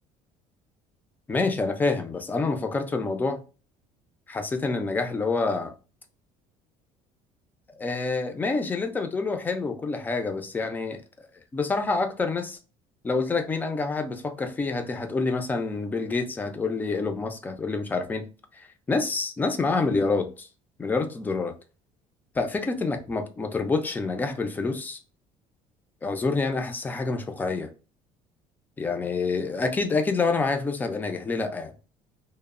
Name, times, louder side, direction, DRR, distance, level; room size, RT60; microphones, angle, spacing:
voice 1, 1.3-3.4 4.3-5.7 7.8-11.3 11.5-12.6 13.0-18.3 18.5-20.5 20.8-21.5 22.4-25.0 26.0-27.7 28.8-31.7, left 3 dB, 15° left, 0.3 m, -27 dB
2.9 x 2.0 x 2.3 m
cardioid pair, 150°, 14 cm